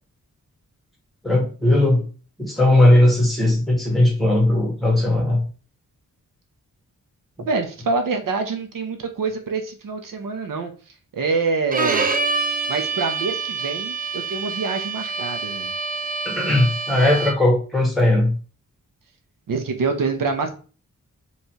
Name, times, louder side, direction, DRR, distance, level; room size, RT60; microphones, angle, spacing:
voice 1, 1.2-2.0 2.4-5.4 16.2-18.3, left 1 dB, ahead, -1 dB, 1.6 m, -18 dB
voice 2, 7.4-10.7 11.1-12.1 12.7-15.7 19.5-20.5, right 4 dB, 75° right, 5 dB, 0.8 m, -25 dB
Bowed string instrument, 11.7-17.6, right 4 dB, 25° right, 0.5 m, -26 dB
5.4 x 3.2 x 2.9 m, 0.37 s
wide cardioid pair, 155°, 33 cm